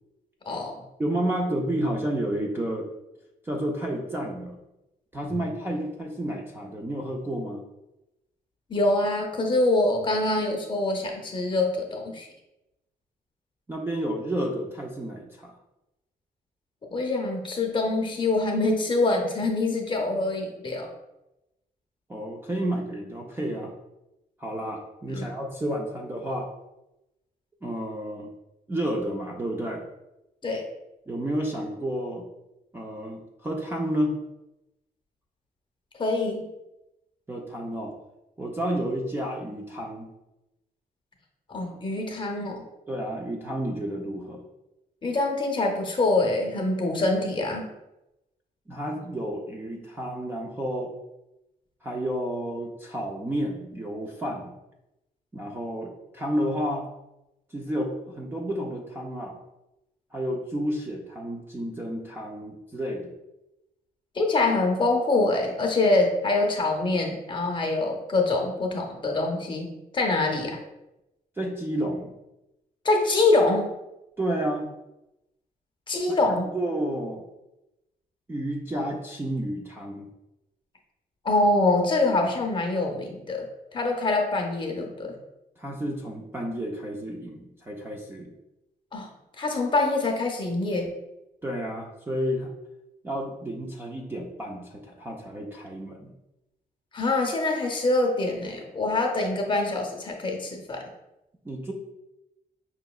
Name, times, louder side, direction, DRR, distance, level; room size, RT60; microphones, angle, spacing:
voice 1, 0.5-0.8 5.3-5.4 8.7-12.3 16.9-20.9 25.1-25.3 30.4-30.6 35.9-36.5 41.5-42.6 45.0-47.7 64.1-70.6 72.8-73.7 75.9-76.5 81.2-83.4 83.7-85.2 88.9-89.1 89.4-90.9 96.9-100.8, left 2 dB, 30° left, 1 dB, 0.6 m, -25 dB
voice 2, 1.0-2.9 3.4-4.6 5.1-7.6 13.7-15.5 22.1-23.7 24.4-26.5 27.6-28.3 28.7-29.8 31.1-32.3 32.7-34.2 37.3-37.9 38.4-40.1 42.9-44.4 48.7-50.9 51.8-54.5 55.3-56.9 57.5-59.4 60.1-63.1 71.4-72.1 74.2-74.7 76.1-76.2 76.5-77.2 78.3-80.1 85.6-88.3 91.4-92.5 93.0-96.1 101.4-101.7, right 1 dB, 15° right, -1 dB, 0.3 m, -31 dB
5.3 x 2.9 x 2.3 m, 0.94 s
wide cardioid pair, 170°, 16 cm